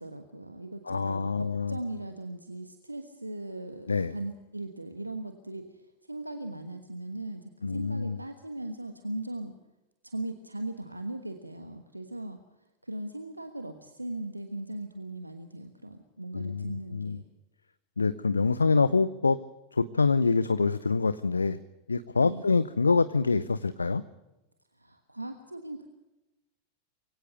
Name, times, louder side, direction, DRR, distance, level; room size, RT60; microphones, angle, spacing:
voice 1, 0.0-9.5 10.0-12.4 12.8-17.2 22.2-22.5 24.8-25.9, right 1 dB, 85° right, 8 dB, 1.3 m, -39 dB
voice 2, 0.9-1.8 3.9-4.1 7.6-8.2 16.3-17.2 18.0-19.4 19.7-21.6 21.9-24.0, left 4 dB, 75° left, 15 dB, 0.6 m, -26 dB
23.5 x 17.0 x 6.6 m, 1.0 s
figure-of-eight pair, 90°, 0 cm